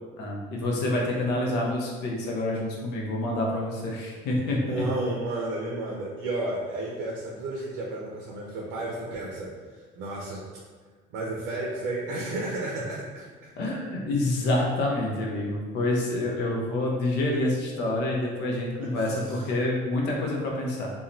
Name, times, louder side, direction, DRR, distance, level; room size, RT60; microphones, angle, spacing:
voice 1, 0.2-4.9 13.6-20.9, left 1 dB, 60° left, -1 dB, 0.7 m, -27 dB
voice 2, 4.7-10.4 11.1-13.3 18.8-18.9, right 2 dB, 80° right, -3 dB, 0.6 m, -32 dB
2.6 x 2.3 x 2.9 m, 1.4 s
cardioid pair, 170°, 19 cm